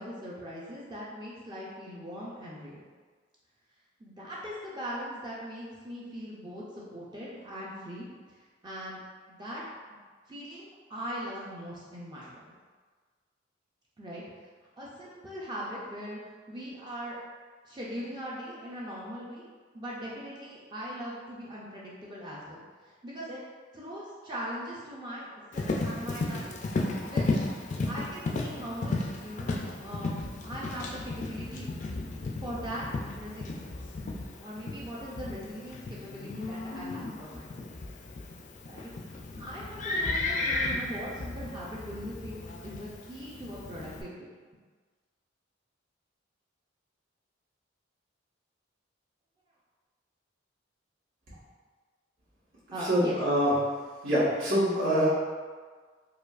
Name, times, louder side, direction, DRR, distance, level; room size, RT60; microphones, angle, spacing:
voice 1, 0.0-2.9 4.0-9.0 9.3-9.6 10.3-12.4 14.0-14.2 14.8-16.2 16.5-17.2 17.6-19.4 19.7-23.5 23.7-26.5 27.1-27.5 27.9-29.5 29.8-31.7 32.4-32.9 33.1-34.0 34.4-37.7 38.6-44.3 52.7-53.2, equal, 25° right, -7 dB, 0.5 m, -40 dB
Livestock farm animals working animals, 25.5-44.0, left 2 dB, 40° left, 0.3 m, -34 dB
voice 2, 52.9-53.5 54.0-55.1, equal, 80° right, -10 dB, 1.4 m, -24 dB
4.7 x 2.3 x 2.4 m, 1.5 s
head